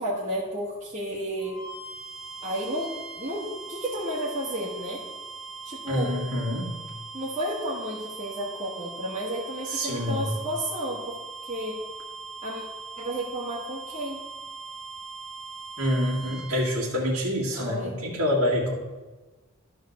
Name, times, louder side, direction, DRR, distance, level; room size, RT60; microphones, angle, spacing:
voice 1, 0.0-1.6 2.4-5.0 5.6-6.2 7.1-11.8 12.4-12.6 13.0-14.2 17.5-18.0, right 1 dB, 35° right, -8 dB, 1.6 m, -32 dB
sound 1, 1.4-16.7, right 4 dB, 5° left, 1.6 m, -40 dB
voice 2, 5.9-6.7 9.7-10.3 15.8-18.7, equal, 80° right, -7 dB, 2.2 m, -26 dB
11.5 x 3.9 x 6.5 m, 1.2 s
head